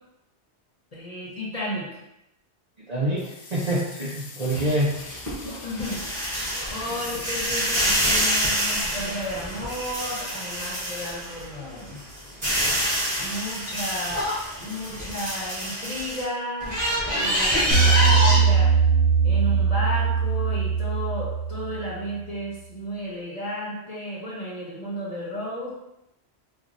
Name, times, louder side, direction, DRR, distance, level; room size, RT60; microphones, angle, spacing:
voice 1, 0.9-1.9 5.6-6.2 6.7-12.0 13.2-14.3 14.6-18.7 19.2-25.7, equal, 35° left, -5 dB, 0.8 m, -33 dB
voice 2, 2.8-4.9, right 1 dB, 50° right, -5 dB, 0.5 m, -26 dB
sound 1, 3.2-9.9, left 4 dB, 90° left, 0.9 m, -42 dB
sound 2, 4.5-11.5 11.9-16.2 16.6-18.4, equal, 15° right, 1.2 m, -26 dB
sound 3, 17.7-22.0, right 6 dB, 85° right, 1.0 m, -21 dB
4.5 x 2.3 x 2.5 m, 0.86 s
omnidirectional pair, 1.1 m